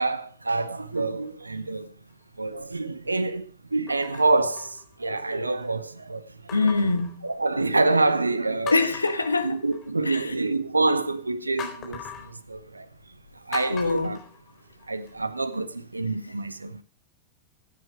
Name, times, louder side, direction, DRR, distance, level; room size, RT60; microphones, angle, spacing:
voice 1, 0.0-1.9 2.4-6.5 7.2-8.7 9.4-12.0 12.3-12.9 13.5-14.2 14.9-16.8, right 3 dB, 80° right, 0.9 m, -26 dB
sound 1, 0.9-1.4 2.1-2.2 3.9-5.3 6.5-7.8 8.3-8.4 8.7-10.1 11.6-12.3 13.5-15.1 15.5-15.6, left 7 dB, 35° left, 4.0 m, -41 dB
voice 2, 6.5-7.3 8.7-9.6 10.0-10.3 13.7-14.2, left 3 dB, 80° left, 1.3 m, -24 dB
15.5 x 9.4 x 4.7 m
figure-of-eight pair, 90°, 0 cm